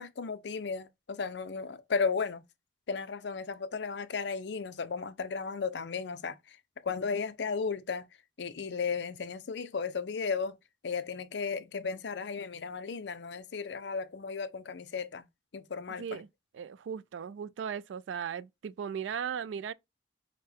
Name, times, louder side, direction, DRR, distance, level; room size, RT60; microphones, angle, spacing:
voice 1, 0.0-2.4 2.9-6.3 6.8-8.0 8.4-10.6 10.8-15.2 15.5-16.2, left 5 dB, 65° left, 0.5 m, -34 dB
voice 2, 16.5-19.7, right 7 dB, 80° right, 0.3 m, -37 dB
6.4 x 2.2 x 3.4 m
head